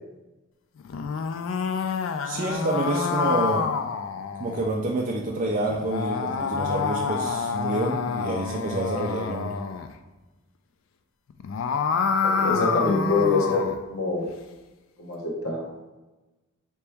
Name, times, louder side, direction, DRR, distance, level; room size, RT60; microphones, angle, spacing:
sound 1, 0.8-4.7 5.7-9.9 11.3-13.8, left 5 dB, 70° left, 0.3 m, -27 dB
voice 1, 2.2-3.7 4.4-9.6, right 2 dB, 40° right, -2 dB, 0.4 m, -28 dB
voice 2, 12.2-14.3 15.0-15.7, left 3 dB, 90° left, 0 dB, 0.9 m, -25 dB
4.4 x 2.9 x 3.4 m, 1.1 s
head